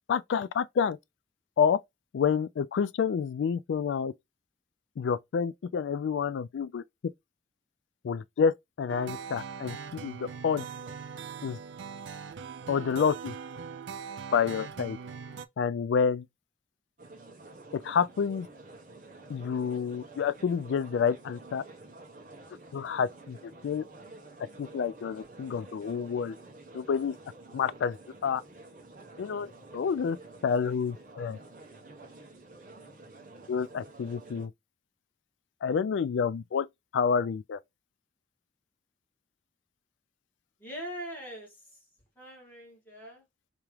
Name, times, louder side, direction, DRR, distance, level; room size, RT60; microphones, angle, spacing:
voice 1, 0.1-1.0 1.6-1.8 2.1-4.1 5.0-7.1 8.0-10.7 11.4-11.6 12.7-13.4 14.3-15.0 15.6-16.3 17.7-18.5 19.3-21.6 22.7-23.9 24.6-26.4 26.7-27.2 27.5-28.0 28.2-28.4 29.2-30.2 30.4-31.4 33.5-34.5 35.6-36.7 36.9-37.6, left 6 dB, 80° left, 0.3 m, -29 dB
sound 1, 8.9-15.5, right 6 dB, 80° right, 0.4 m, -41 dB
sound 2, 17.0-34.5, right 2 dB, 45° right, 1.0 m, -50 dB
voice 2, 40.6-41.6 42.2-43.2, equal, 10° left, 1.8 m, -42 dB
3.5 x 2.9 x 3.1 m
head